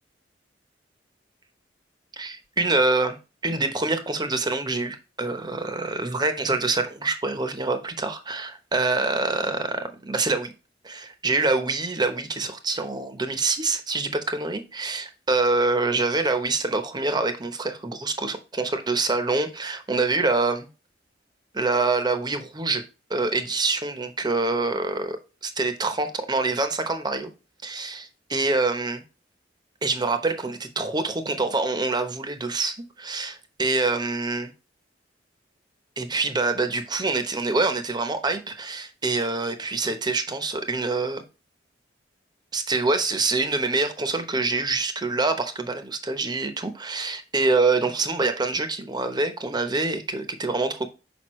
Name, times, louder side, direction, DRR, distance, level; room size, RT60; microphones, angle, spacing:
voice 1, 2.1-3.2 3.4-10.5 10.8-20.7 21.5-22.8 23.1-25.2 25.4-27.3 27.6-29.0 29.8-34.5 36.0-41.2 42.5-50.9, right 3 dB, 25° right, 0.9 m, -25 dB
6.2 x 5.2 x 3.1 m
head